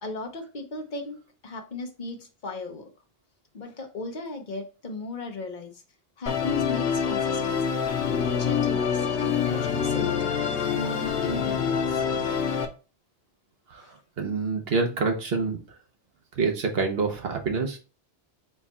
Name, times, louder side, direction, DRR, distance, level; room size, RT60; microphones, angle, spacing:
voice 1, 0.0-2.9 3.5-5.8 6.2-7.8 8.4-10.3 10.7-12.0 13.8-14.0, left 2 dB, 45° left, 2 dB, 0.9 m, -37 dB
Musical instrument, 6.3-12.7, left 7 dB, 85° left, 1.0 m, -26 dB
voice 2, 14.2-15.6 16.4-17.8, right 4 dB, 65° right, 3 dB, 1.1 m, -26 dB
4.4 x 2.4 x 4.1 m, 0.34 s
omnidirectional pair, 1.1 m